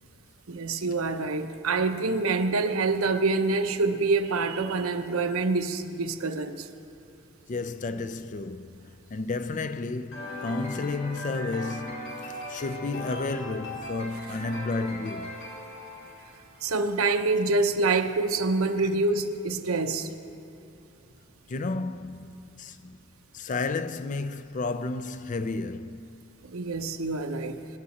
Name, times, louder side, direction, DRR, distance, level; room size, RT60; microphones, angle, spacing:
voice 1, 0.5-6.7 16.6-20.1 26.4-27.6, right 3 dB, 80° right, 0.8 m, -26 dB
voice 2, 7.5-15.4 21.5-23.0 23.3-26.1, left 3 dB, 35° left, 0.4 m, -32 dB
sound 1, 10.1-16.8, left 1 dB, 60° left, 3.7 m, -39 dB
25.0 x 9.7 x 4.2 m
head